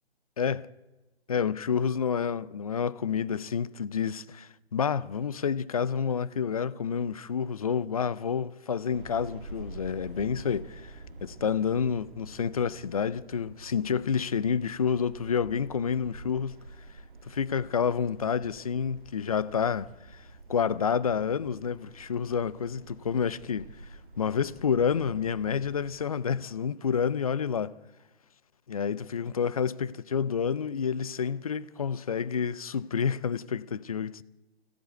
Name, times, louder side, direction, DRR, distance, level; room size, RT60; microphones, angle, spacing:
voice 1, 0.4-0.7 1.3-16.6 17.3-20.2 20.5-23.7 24.2-27.7 28.7-34.2, left 7 dB, 35° left, 0.7 m, -29 dB
sound 1, 8.9-25.9, right 2 dB, 55° right, 2.4 m, -48 dB
25.0 x 16.5 x 8.3 m
figure-of-eight pair, 145°, 32 cm